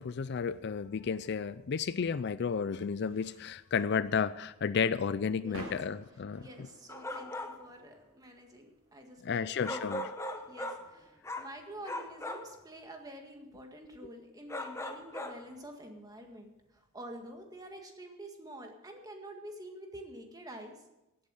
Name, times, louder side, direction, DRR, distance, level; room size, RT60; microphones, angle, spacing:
voice 1, 0.0-6.5 9.2-10.1, left 6 dB, 55° left, 16 dB, 0.4 m, -32 dB
sound 1, 1.6-12.9, right 1 dB, 70° right, 3.7 m, -54 dB
voice 2, 6.4-9.9 10.2-20.8, right 1 dB, 20° right, 3 dB, 1.8 m, -48 dB
sound 2, 6.9-7.7 9.6-10.9 11.2-11.6 11.8-12.6 14.5-15.5, left 1 dB, 15° left, 0.9 m, -39 dB
16.5 x 8.7 x 6.4 m, 0.96 s
head